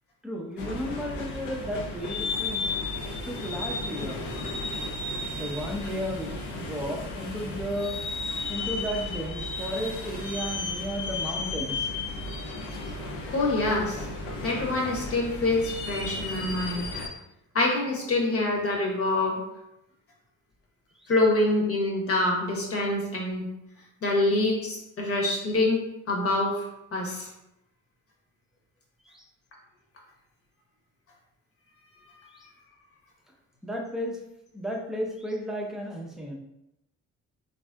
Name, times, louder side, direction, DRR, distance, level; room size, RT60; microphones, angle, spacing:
voice 1, 0.2-2.7 3.2-4.2 5.3-8.0 8.5-11.9 12.8-12.9 29.1-29.2 32.3-32.5 33.6-34.2 34.5-36.3, equal, ahead, -1 dB, 0.6 m, -34 dB
sound 1, 0.6-17.1, left 3 dB, 75° left, 0.6 m, -34 dB
voice 2, 13.3-14.1 14.4-16.9 17.5-19.4 21.1-23.5 24.0-27.3, left 2 dB, 50° left, -1 dB, 1.0 m, -26 dB
3.3 x 2.6 x 2.2 m, 0.85 s
cardioid pair, 90°, 30 cm